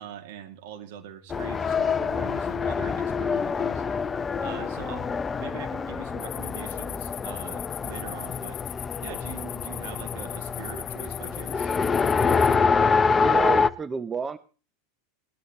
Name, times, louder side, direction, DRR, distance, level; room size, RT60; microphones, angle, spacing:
voice 1, 0.0-3.8 4.4-5.1 5.4-8.6 9.0-11.8, right 10 dB, 65° right, 7 dB, 2.5 m, -42 dB
Race car auto racing, 1.3-13.7, left 5 dB, 20° left, 0.7 m, -26 dB
sound 1, 6.2-12.6, left 15 dB, 50° left, 0.9 m, -39 dB
voice 2, 13.2-14.4, right 6 dB, 20° right, 16 dB, 0.7 m, -30 dB
18.5 x 12.5 x 3.1 m, 0.37 s
hypercardioid pair, 95°, 0 cm